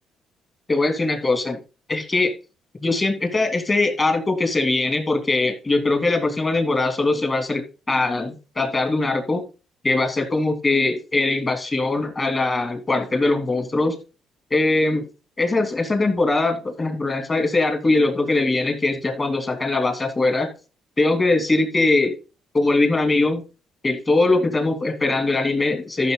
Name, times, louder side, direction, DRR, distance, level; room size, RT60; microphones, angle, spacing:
voice 1, 0.7-1.6 1.9-2.3 2.8-9.5 9.8-14.0 14.5-15.1 15.4-20.5 21.0-22.1 22.5-23.4 23.8-26.1, left 2 dB, 25° left, 5 dB, 3.0 m, -21 dB
13.0 x 6.4 x 4.0 m, 0.33 s
cardioid pair, 105°, 0 cm